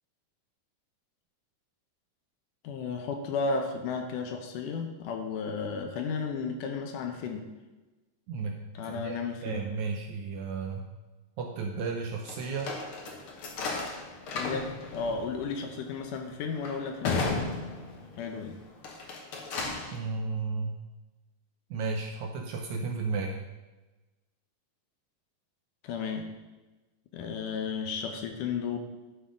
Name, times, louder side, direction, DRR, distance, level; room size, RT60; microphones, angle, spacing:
voice 1, 2.6-7.5 8.8-9.6 14.3-17.4 18.2-18.6 25.8-26.3 27.1-28.8, left 5 dB, 75° left, 4 dB, 2.3 m, -33 dB
voice 2, 8.3-10.9 11.4-12.7 19.9-20.8 21.7-23.4, right 4 dB, 75° right, 1 dB, 1.8 m, -33 dB
sound 1, 12.3-18.3 18.7-20.0, left 3 dB, 60° left, 1.4 m, -35 dB
11.0 x 4.1 x 5.0 m, 1.1 s
omnidirectional pair, 3.9 m